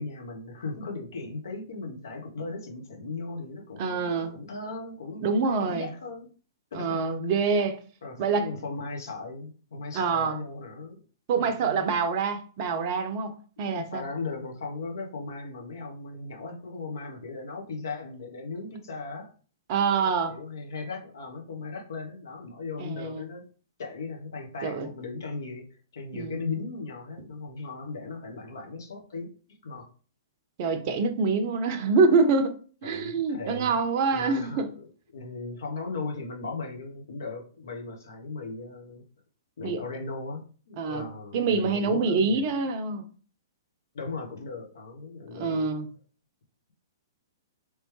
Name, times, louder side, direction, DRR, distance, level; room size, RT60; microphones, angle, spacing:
voice 1, 0.0-6.3 6.8-7.1 8.0-11.0 11.4-11.8 13.6-19.3 20.0-23.4 23.8-29.9 32.8-33.8 34.1-39.0 39.6-42.5 43.9-45.7, left 3 dB, 60° left, 1.1 m, -37 dB
voice 2, 3.8-4.3 5.2-5.9 6.7-7.8 8.2-8.5 9.9-10.4 11.3-14.0 19.7-20.4 22.8-23.2 24.6-24.9 26.1-26.4 30.6-32.6 32.8-34.7 39.6-39.8 40.8-41.1 41.3-43.0 45.3-45.9, right 4 dB, 40° right, 0.6 m, -26 dB
3.3 x 3.0 x 3.2 m
figure-of-eight pair, 115°, 2 cm